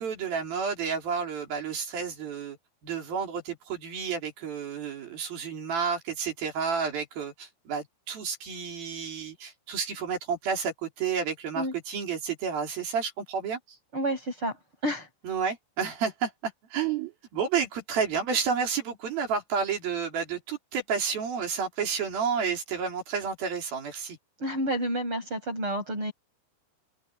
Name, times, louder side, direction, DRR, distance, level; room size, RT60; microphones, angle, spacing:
voice 1, 0.0-2.6 2.8-13.8 15.2-24.2, right 6 dB, 50° right, 5.2 m, -31 dB
voice 2, 13.9-14.6 14.8-15.1 24.4-26.1, right 1 dB, 25° right, 8.7 m, -29 dB
open air
omnidirectional pair, 5.6 m